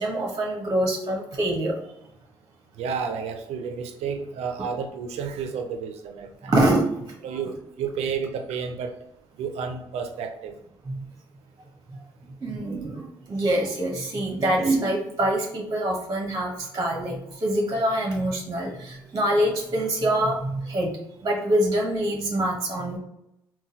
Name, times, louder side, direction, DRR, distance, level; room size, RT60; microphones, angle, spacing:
voice 1, 0.0-1.8 6.5-6.9 10.9-11.0 12.4-20.9 21.2-23.0, right 1 dB, 35° right, 0 dB, 0.9 m, -25 dB
voice 2, 2.8-6.5 7.2-8.9 9.4-10.6, right 6 dB, 70° right, 6 dB, 0.5 m, -31 dB
3.8 x 2.2 x 2.7 m, 0.83 s
hypercardioid pair, 50°, 11 cm